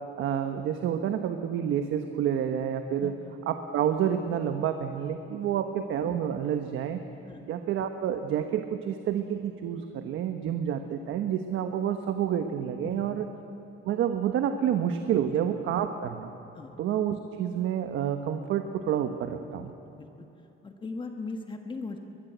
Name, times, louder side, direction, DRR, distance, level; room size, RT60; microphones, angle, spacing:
voice 1, 0.2-3.1 3.5-7.0 7.5-13.3 13.8-16.3 16.8-19.7, right 9 dB, 75° right, 7 dB, 1.3 m, -29 dB
voice 2, 12.8-13.3 15.2-15.3 16.5-16.8 19.6-20.3 20.6-22.0, left 3 dB, 25° left, 5 dB, 1.4 m, -39 dB
22.5 x 22.0 x 8.2 m, 3.0 s
cardioid pair, 155°, 21 cm